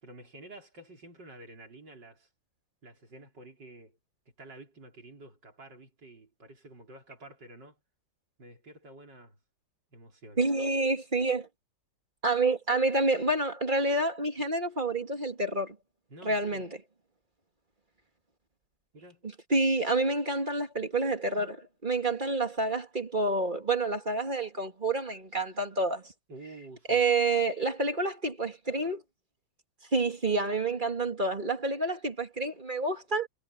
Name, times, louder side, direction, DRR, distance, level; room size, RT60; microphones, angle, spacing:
voice 1, 0.0-2.3 2.8-4.0 4.4-7.8 8.4-9.4 9.9-10.4 16.1-16.7 18.9-19.2 26.3-27.1, right 2 dB, 55° right, 5.4 m, -50 dB
voice 2, 10.4-11.5 12.2-15.8 16.2-16.7 19.5-26.1 26.9-29.0 29.9-33.3, right 2 dB, 25° right, 2.2 m, -28 dB
omnidirectional pair, 2.3 m